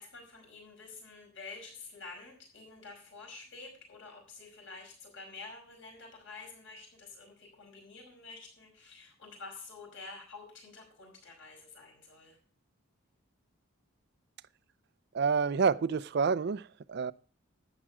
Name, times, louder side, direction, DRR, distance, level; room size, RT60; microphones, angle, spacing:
voice 1, 0.0-12.4, left 3 dB, 60° left, 5.3 m, -49 dB
voice 2, 15.1-17.1, right 5 dB, 50° right, 0.4 m, -28 dB
12.0 x 7.7 x 4.8 m
head